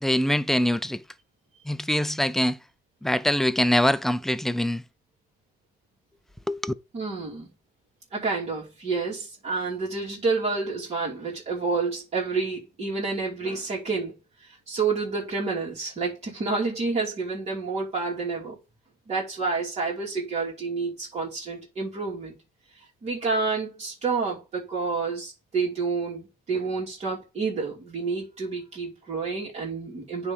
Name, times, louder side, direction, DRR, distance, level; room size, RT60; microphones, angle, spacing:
voice 1, 0.0-1.0 1.7-2.6 3.0-4.8 6.5-6.7, equal, ahead, 0.4 m, -23 dB
voice 2, 6.9-7.5 8.1-18.6 19.1-22.4 23.0-30.3, right 4 dB, 40° right, 2.7 m, -29 dB
9.6 x 3.4 x 5.3 m
cardioid pair, 110°, 17 cm